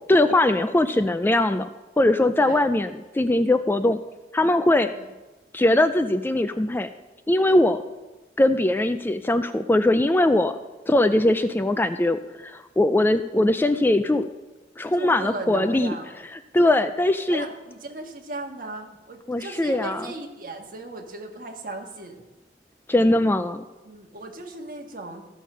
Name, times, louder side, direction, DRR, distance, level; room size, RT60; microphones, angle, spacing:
voice 1, 0.1-1.7 2.0-4.0 4.3-4.9 5.5-6.9 7.3-7.8 8.4-10.6 10.9-14.3 14.8-15.9 16.5-17.5 19.3-20.1 22.9-23.6, left 1 dB, 10° left, 10 dB, 0.3 m, -21 dB
voice 2, 14.9-16.1 16.6-16.9 17.3-22.2 23.8-25.2, right 2 dB, 50° right, 2 dB, 1.5 m, -36 dB
15.0 x 6.4 x 5.6 m, 1.1 s
head